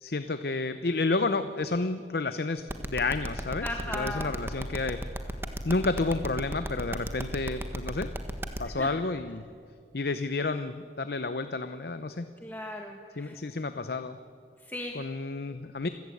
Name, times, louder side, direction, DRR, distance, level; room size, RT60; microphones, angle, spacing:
voice 1, 0.0-5.0 5.6-8.1 8.6-9.4 9.9-12.3 13.2-14.2 14.9-15.9, left 3 dB, 60° left, 10 dB, 0.7 m, -30 dB
sound 1, 2.7-8.6, right 1 dB, 15° right, 1.4 m, -34 dB
voice 2, 3.6-4.3 8.8-8.9 12.4-13.4 14.7-14.9, left 1 dB, 10° left, 2 dB, 1.4 m, -37 dB
27.5 x 16.0 x 8.5 m, 2.3 s
head